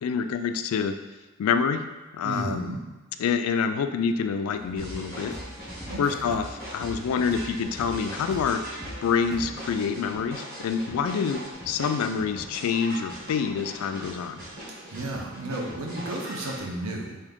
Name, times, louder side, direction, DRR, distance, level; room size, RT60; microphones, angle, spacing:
voice 1, 0.0-1.0 1.4-1.9 2.1-2.7 3.2-5.3 6.0-6.4 6.7-8.6 9.0-11.4 11.7-14.4, left 6 dB, 75° left, 13 dB, 0.3 m, -26 dB
voice 2, 2.2-2.8 5.9-6.3 14.9-17.2, right 1 dB, 75° right, 0 dB, 0.7 m, -33 dB
sound 1, 4.5-9.7, equal, ahead, 0.4 m, -42 dB
sound 2, 4.8-16.6, equal, 45° right, 1.3 m, -40 dB
3.6 x 2.8 x 3.5 m, 1.2 s
head